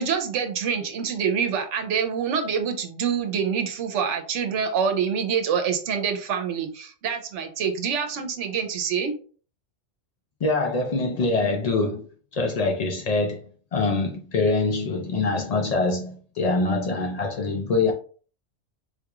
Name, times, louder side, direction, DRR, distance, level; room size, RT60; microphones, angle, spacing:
voice 1, 0.0-9.1, right 7 dB, 75° right, 1.0 m, -26 dB
voice 2, 10.4-12.1 12.3-13.4 13.7-17.9, left 3 dB, 80° left, 0.3 m, -24 dB
4.1 x 2.4 x 2.9 m
omnidirectional pair, 1.3 m